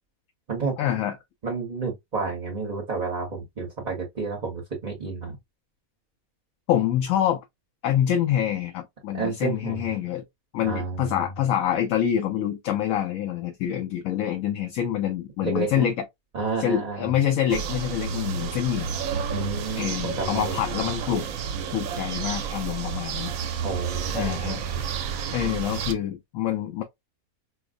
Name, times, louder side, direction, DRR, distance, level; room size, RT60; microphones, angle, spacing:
voice 1, 0.8-1.2 6.7-7.4 7.8-10.2 10.5-16.0 16.6-18.9 19.8-21.3 21.7-23.4 24.1-24.7 25.3-26.8, left 10 dB, 70° left, 1.0 m, -26 dB
voice 2, 1.4-5.4 9.1-9.9 10.6-11.2 15.4-15.9 16.3-17.1 19.3-20.6 23.6-24.8, right 4 dB, 35° right, 0.9 m, -30 dB
sound 1, 17.5-25.9, right 7 dB, 75° right, 1.0 m, -31 dB
4.7 x 2.0 x 2.5 m
omnidirectional pair, 1.5 m